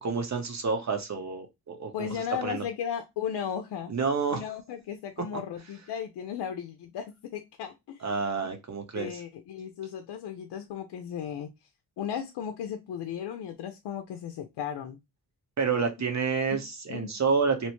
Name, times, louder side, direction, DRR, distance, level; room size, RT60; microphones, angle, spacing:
voice 1, 0.0-2.6 3.9-4.4 8.0-9.2 15.6-17.7, right 5 dB, 45° right, 6 dB, 0.9 m, -29 dB
voice 2, 1.9-3.9 4.3-8.0 8.4-8.5 8.9-11.5 12.0-15.0 16.5-16.6 16.9-17.1, left 8 dB, 80° left, 5 dB, 0.5 m, -35 dB
3.0 x 2.1 x 2.9 m, 0.21 s
cardioid pair, 65°, 40 cm